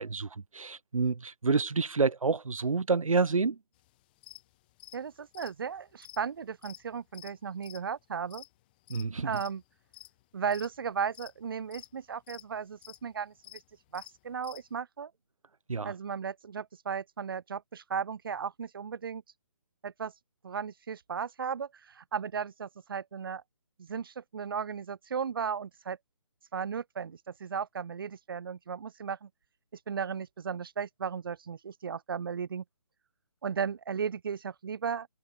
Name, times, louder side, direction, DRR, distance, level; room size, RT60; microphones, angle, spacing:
voice 1, 0.0-3.6 8.9-9.3 15.7-15.9, right 4 dB, 85° right, 2.2 m, -28 dB
sound 1, 3.8-3.9 4.2-4.4 4.7-9.1 9.3-9.6 9.9-10.2 10.5-10.8 11.1-12.0 12.3-12.4 12.7-13.0 13.4-13.6 13.9-14.6, left 19 dB, 15° left, 2.5 m, -50 dB
voice 2, 4.9-8.4 9.2-9.6 10.3-13.6 13.9-15.1 15.8-19.2 19.8-20.1 20.4-23.4 23.8-26.0 26.5-29.3 29.9-32.6 33.4-35.1, right 6 dB, 40° right, 4.4 m, -35 dB
hypercardioid pair, 170°, 17 cm